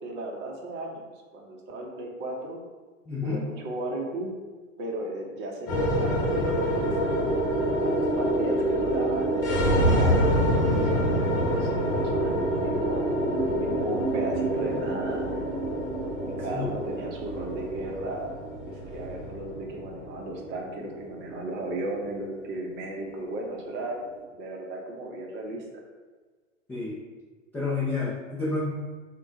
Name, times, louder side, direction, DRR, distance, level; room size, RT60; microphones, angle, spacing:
voice 1, 0.0-1.0 1.3-2.6 3.2-4.3 4.8-7.5 7.8-13.1 13.3-15.3 16.4-18.4 18.6-24.0 24.3-25.8, right 2 dB, 30° right, 0 dB, 0.7 m, -35 dB
voice 2, 3.1-3.5 8.1-8.2 14.7-14.8 16.5-16.7 26.7-27.0 27.5-28.7, left 3 dB, 5° left, -10 dB, 0.3 m, -30 dB
sound 1, 5.7-24.1, equal, 45° left, 1.1 m, -27 dB
3.5 x 2.2 x 3.8 m, 1.4 s
hypercardioid pair, 105°, 38 cm